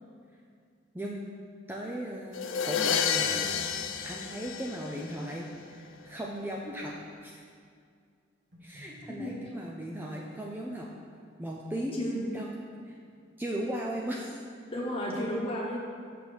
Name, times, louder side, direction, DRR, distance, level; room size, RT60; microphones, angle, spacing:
voice 1, 0.9-1.2 1.7-7.0 7.2-7.4 8.6-10.9 11.4-12.1 12.3-12.5 12.9-13.0 13.4-14.4, right 1 dB, 10° right, -2 dB, 0.3 m, -37 dB
sound 1, 2.3-5.3, left 7 dB, 80° left, 0.4 m, -30 dB
sound 2, 3.2-4.1 8.5-9.4, right 1 dB, 65° right, 1.5 m, -52 dB
voice 2, 9.1-9.4 11.9-12.2 14.7-15.8, equal, 30° left, -3 dB, 1.1 m, -33 dB
6.9 x 6.1 x 3.3 m, 2.2 s
head